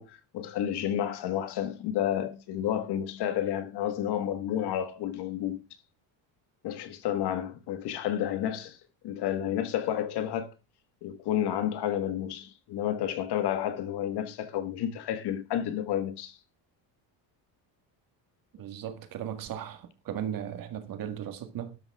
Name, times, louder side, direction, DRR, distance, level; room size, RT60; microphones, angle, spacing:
voice 1, 0.0-5.6 6.6-8.8 9.0-10.5 11.0-16.4, left 10 dB, 55° left, 1.6 m, -31 dB
voice 2, 18.5-21.8, right 10 dB, 45° right, 1.7 m, -37 dB
12.5 x 10.5 x 3.5 m
cardioid pair, 165°, 47 cm